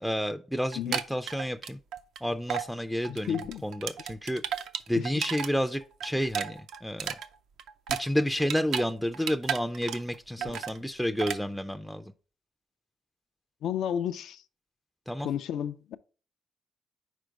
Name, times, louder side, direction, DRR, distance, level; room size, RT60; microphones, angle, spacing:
voice 1, 0.0-1.8 2.2-4.4 4.9-7.2 8.0-12.1 15.1-15.3, equal, ahead, 0.3 m, -30 dB
sound 1, 0.7-2.2 2.5-2.7 3.0-5.5 5.8-8.9 9.1-10.2 10.4-10.8 11.2-11.4, right 8 dB, 80° right, 0.5 m, -34 dB
voice 2, 3.1-3.6 4.9-5.0 10.4-10.6 13.6-14.4 15.2-16.0, left 9 dB, 75° left, 0.4 m, -32 dB
5.1 x 4.4 x 4.6 m
cardioid pair, 90°, 0 cm